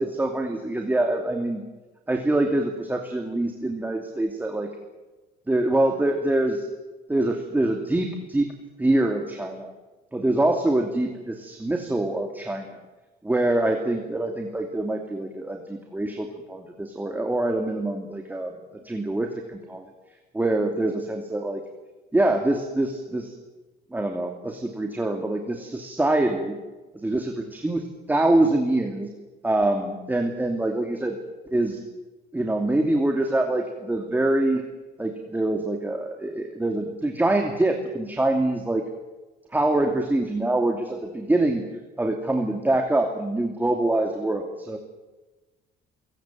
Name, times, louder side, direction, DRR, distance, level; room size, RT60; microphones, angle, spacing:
voice 1, 0.0-1.6 2.1-4.7 5.5-6.7 7.1-8.5 8.8-9.7 10.1-12.8 13.2-18.6 18.8-19.9 20.3-21.6 22.1-23.3 23.9-26.6 27.0-29.1 29.4-31.2 31.5-31.8 32.3-34.6 35.0-38.9 39.5-41.6 42.0-44.8, right 2 dB, 10° right, 3 dB, 2.7 m, -25 dB
29.0 x 18.0 x 7.6 m, 1.2 s
cardioid pair, 110°, 17 cm